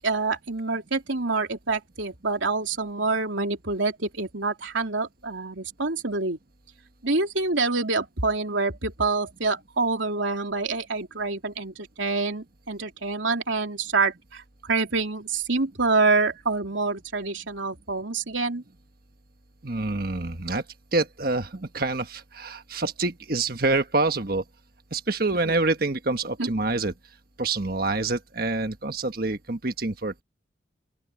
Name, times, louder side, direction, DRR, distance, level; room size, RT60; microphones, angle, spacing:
voice 1, 0.0-6.4 7.0-18.6 25.5-25.6 26.4-26.5, right 3 dB, 80° right, 3.1 m, -26 dB
voice 2, 19.6-20.6 20.9-24.4 24.9-26.9 27.4-30.2, right 3 dB, 50° right, 1.4 m, -26 dB
open air
head